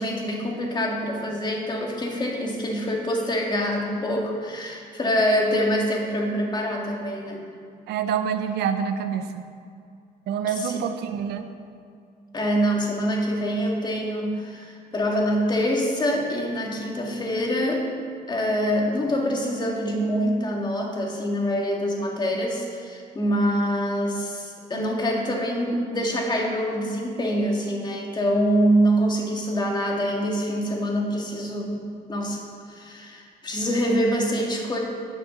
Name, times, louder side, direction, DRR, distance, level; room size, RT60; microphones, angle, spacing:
voice 1, 0.0-7.5 10.5-10.8 12.3-17.9 18.3-34.8, equal, 25° left, -1 dB, 2.0 m, -25 dB
voice 2, 7.9-9.3 10.3-11.5, right 7 dB, 75° right, 8 dB, 0.8 m, -26 dB
10.0 x 6.8 x 6.3 m, 2.3 s
cardioid pair, 110°, 17 cm